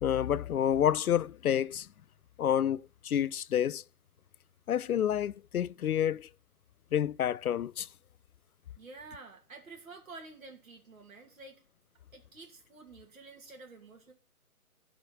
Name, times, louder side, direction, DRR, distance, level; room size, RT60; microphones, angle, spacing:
voice 1, 0.0-1.9 2.4-3.8 4.7-6.3 6.9-7.9, left 10 dB, 70° left, 0.5 m, -29 dB
voice 2, 8.8-11.6 12.1-14.1, right 3 dB, 60° right, 2.6 m, -50 dB
11.0 x 5.0 x 6.3 m
figure-of-eight pair, 155°, 45 cm